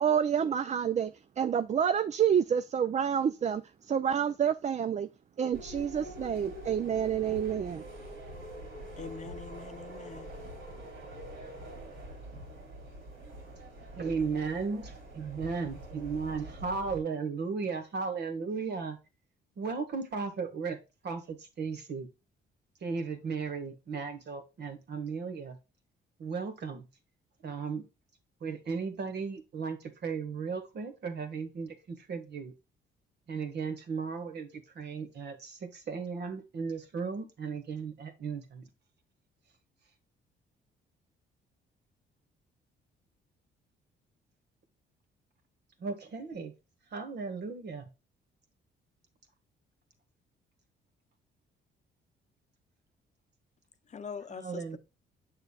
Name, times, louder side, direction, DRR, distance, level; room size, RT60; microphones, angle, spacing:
voice 1, 0.0-3.6 3.9-5.1 5.4-7.8, right 8 dB, 35° right, 0.4 m, -28 dB
sound 1, 5.5-17.0, right 1 dB, 75° right, 3.9 m, -45 dB
voice 2, 9.0-10.3 53.9-54.8, left 6 dB, 35° left, 0.7 m, -43 dB
voice 3, 14.0-19.0 19.6-22.1 22.8-25.6 26.2-26.9 27.4-27.9 28.4-32.5 33.3-38.7 45.8-46.5 46.9-47.8 54.4-54.8, right 5 dB, 55° right, 1.7 m, -36 dB
7.2 x 6.5 x 2.3 m
cardioid pair, 90°, 20 cm